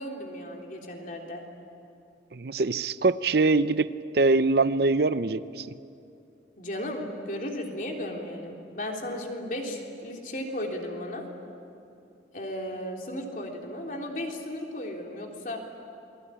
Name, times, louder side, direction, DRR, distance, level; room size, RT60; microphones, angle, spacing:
voice 1, 0.0-1.4 6.6-11.3 12.3-15.6, left 1 dB, 45° left, 1 dB, 3.6 m, -35 dB
voice 2, 2.3-3.9 4.1-5.7, right 3 dB, 60° right, 14 dB, 0.6 m, -23 dB
28.0 x 21.0 x 9.9 m, 2.6 s
head